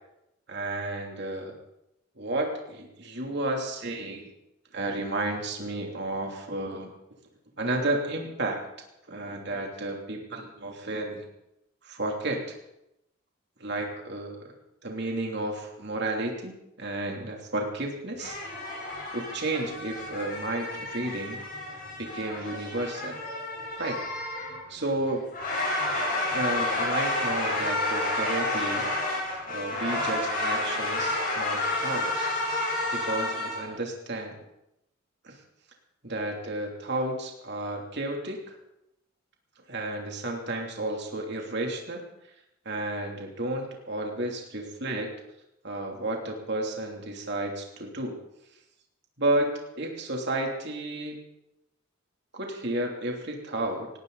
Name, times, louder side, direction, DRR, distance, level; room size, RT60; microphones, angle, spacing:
voice 1, 0.5-1.6 2.2-4.3 4.7-6.9 7.6-8.6 9.1-11.3 11.8-12.5 13.6-14.4 14.8-18.4 19.1-21.4 22.0-23.2 23.8-24.0 24.7-25.3 26.3-28.9 29.5-32.4 32.9-34.3 35.2-35.4 36.0-38.5 39.7-42.0 42.6-45.1 45.6-48.2 49.2-49.5 49.8-51.2 52.3-53.9, right 2 dB, 55° right, 1 dB, 3.0 m, -32 dB
sound 1, 18.2-33.7, left 2 dB, 45° left, 7.5 m, -30 dB
18.5 x 17.5 x 4.1 m, 0.86 s
head